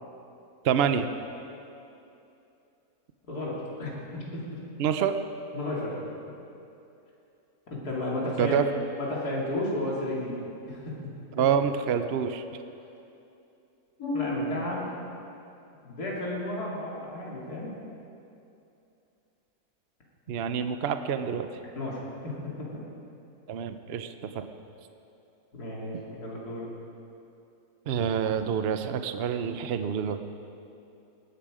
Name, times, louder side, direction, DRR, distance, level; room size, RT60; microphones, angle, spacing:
voice 1, 0.6-1.1 4.8-5.2 8.4-8.7 11.4-12.4 20.3-21.5 23.5-24.5 25.9-26.0 27.9-30.2, right 7 dB, 55° right, 9 dB, 0.8 m, -27 dB
voice 2, 3.3-4.6 5.5-6.0 7.7-8.6 9.0-10.4 10.6-10.9 14.0-14.9 15.8-17.7 21.7-22.0 22.2-22.8 25.5-26.7, left 1 dB, 90° left, -5 dB, 3.2 m, -32 dB
19.5 x 12.0 x 5.0 m, 2.7 s
omnidirectional pair, 1.6 m